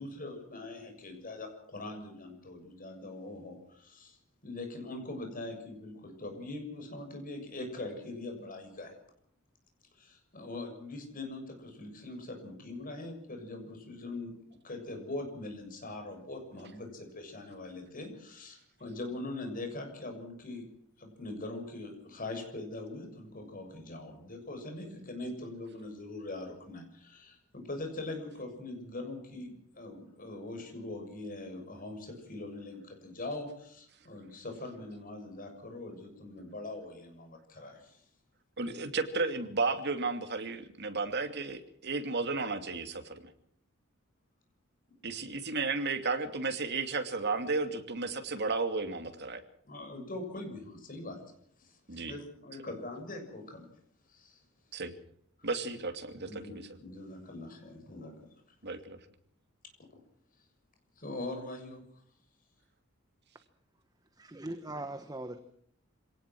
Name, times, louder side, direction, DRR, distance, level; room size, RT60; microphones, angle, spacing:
voice 1, 0.0-4.2 4.4-8.9 9.9-20.7 21.0-38.0 49.6-51.2 51.6-53.7 54.1-54.4 55.4-55.5 56.2-58.1 61.0-61.8, left 2 dB, 40° left, 5 dB, 6.9 m, -42 dB
voice 2, 38.6-43.2 45.0-49.4 51.9-52.1 54.7-54.9 55.4-56.3 58.6-59.0, right 3 dB, 55° right, 7 dB, 2.6 m, -33 dB
voice 3, 64.2-65.4, right 1 dB, 20° right, 9 dB, 1.2 m, -40 dB
26.0 x 18.5 x 6.1 m, 0.66 s
head